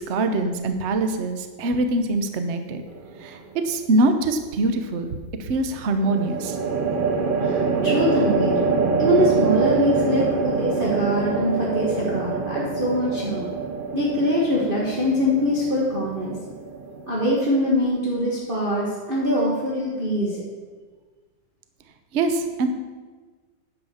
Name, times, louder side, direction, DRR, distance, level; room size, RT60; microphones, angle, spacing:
voice 1, 0.0-2.8 3.2-3.4 3.6-6.6 22.1-22.7, right 2 dB, 50° right, 7 dB, 0.8 m, -23 dB
sound 1, 2.9-3.5 6.0-17.4, right 4 dB, 85° right, 0.4 m, -25 dB
voice 2, 7.4-8.6 9.0-13.5 13.9-16.4 17.1-20.4, equal, 30° right, -6 dB, 1.6 m, -23 dB
9.9 x 5.7 x 7.0 m, 1.4 s
omnidirectional pair, 2.1 m